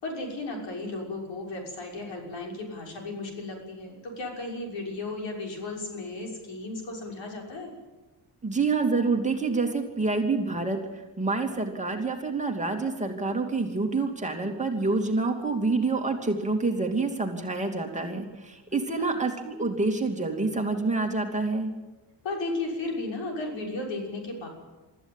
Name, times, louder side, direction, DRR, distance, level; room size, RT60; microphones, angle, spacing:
voice 1, 0.0-7.7 19.0-19.1 22.2-24.5, left 2 dB, 80° left, 1 dB, 6.3 m, -34 dB
voice 2, 8.4-21.7, right 3 dB, 15° right, 2 dB, 2.8 m, -27 dB
24.5 x 14.0 x 9.1 m, 1.2 s
cardioid pair, 145°, 44 cm